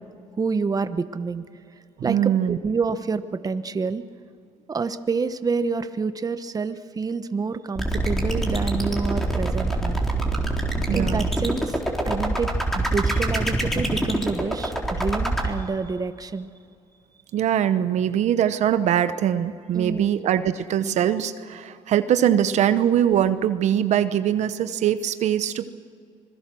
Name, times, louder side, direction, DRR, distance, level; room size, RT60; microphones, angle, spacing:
voice 1, 0.4-1.4 2.0-4.0 4.7-10.0 10.9-11.8 12.1-16.5 19.7-20.1, right 4 dB, 30° right, 11 dB, 1.1 m, -28 dB
voice 2, 2.0-2.6 10.9-11.3 17.3-25.7, right 10 dB, 70° right, 11 dB, 0.9 m, -22 dB
sound 1, 7.8-15.5, right 2 dB, ahead, 4.0 m, -24 dB
26.0 x 21.0 x 6.3 m, 2.3 s
cardioid pair, 90°, 13 cm